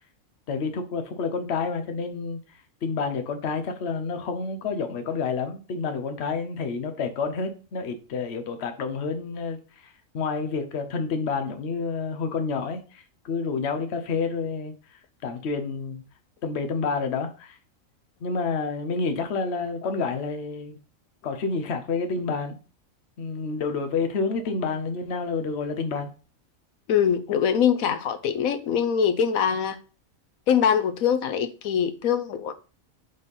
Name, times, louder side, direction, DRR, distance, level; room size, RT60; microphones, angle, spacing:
voice 1, 0.5-2.4 2.8-9.6 9.8-14.7 15.2-16.0 16.4-17.6 18.2-20.8 21.2-22.6 23.2-26.1, left 4 dB, 55° left, 1.0 m, -29 dB
voice 2, 26.9-29.8 30.5-32.5, left 8 dB, 85° left, 1.2 m, -23 dB
5.2 x 4.2 x 5.4 m
omnidirectional pair, 1.4 m